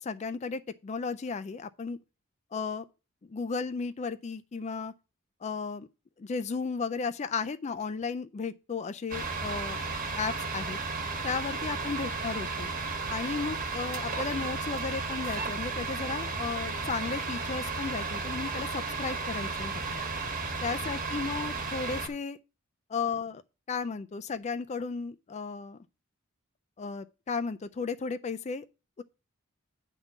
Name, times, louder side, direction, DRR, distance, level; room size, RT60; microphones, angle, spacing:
voice 1, 0.0-2.0 2.5-2.9 3.2-4.9 5.4-5.9 6.2-9.8 10.2-10.8 11.2-12.7 13.1-20.0 20.6-22.4 22.9-23.4 23.7-25.8 26.8-28.7 29.0-29.1, left 5 dB, 35° left, 0.4 m, -34 dB
sound 1, 9.1-22.1, right 4 dB, 40° right, 1.3 m, -34 dB
9.2 x 3.7 x 6.9 m
head